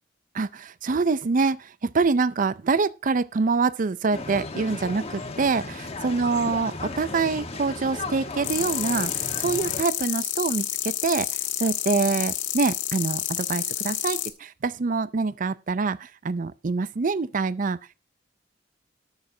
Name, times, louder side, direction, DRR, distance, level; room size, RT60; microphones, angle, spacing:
voice 1, 0.3-11.3 11.6-17.9, right 4 dB, 45° right, 0.5 m, -25 dB
sound 1, 4.1-9.8, left 2 dB, 35° left, 1.4 m, -35 dB
sound 2, 8.4-14.3, left 11 dB, 85° left, 1.6 m, -29 dB
19.0 x 6.5 x 2.8 m
head